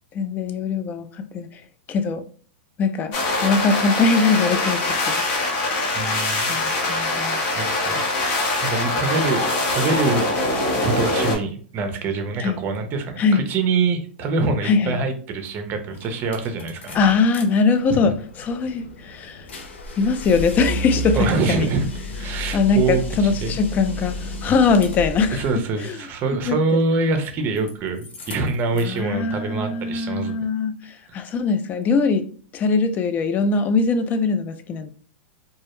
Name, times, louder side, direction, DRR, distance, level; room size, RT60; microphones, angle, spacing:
voice 1, 0.1-1.6 1.9-2.2 2.8-3.1 3.4-5.2 6.3-7.4 12.4-12.6 13.2-13.4 14.6-15.0 16.9-19.5 20.0-21.7 22.3-25.5 25.8-26.0 26.3-27.2 28.7-32.3 32.5-34.9, left 4 dB, 25° left, 0.3 m, -22 dB
sound 1, 3.1-11.4, left 2 dB, 45° left, 0.8 m, -23 dB
voice 2, 5.9-6.5 7.6-8.1 8.6-17.0 17.9-18.0 21.1-21.9 22.1-23.0 23.4-23.5 25.3-30.4, right 3 dB, 35° right, 0.6 m, -25 dB
sound 2, 15.5-15.6 15.9-17.4 17.8-25.5 27.0-27.7 28.0-29.0, equal, 85° left, 0.6 m, -32 dB
2.2 x 2.0 x 2.9 m
hypercardioid pair, 120°, 6 cm